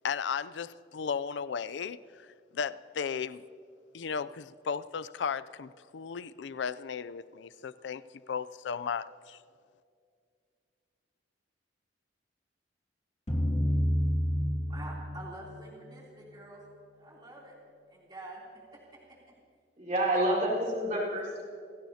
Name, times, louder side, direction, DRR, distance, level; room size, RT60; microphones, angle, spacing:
voice 1, 0.0-3.4 3.9-8.0 8.3-9.4, left 6 dB, 80° left, 16 dB, 0.4 m, -35 dB
sound 1, 13.3-16.4, equal, 35° left, 2.5 m, -30 dB
voice 2, 14.7-16.6 16.9-17.5 17.9-18.4 18.7-19.2 20.9-21.2, right 2 dB, 25° right, -5 dB, 3.1 m, -47 dB
voice 3, 19.8-21.4, right 1 dB, 45° right, -4 dB, 4.2 m, -28 dB
29.0 x 16.5 x 2.8 m, 2.3 s
head